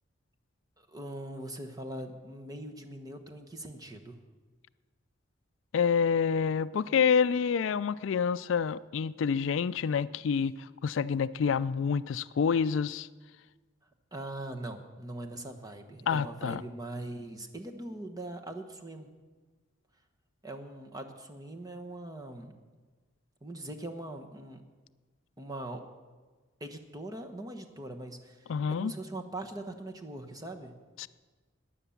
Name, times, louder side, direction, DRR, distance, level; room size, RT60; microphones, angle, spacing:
voice 1, 0.8-4.2 14.1-19.1 20.4-22.6 23.4-24.6 25.4-25.8 26.6-30.7, right 1 dB, 20° right, 4 dB, 1.1 m, -41 dB
voice 2, 5.7-13.1 16.1-16.6 28.5-28.9 31.0-31.1, left 6 dB, 70° left, 16 dB, 0.3 m, -28 dB
15.0 x 10.0 x 7.1 m, 1.4 s
head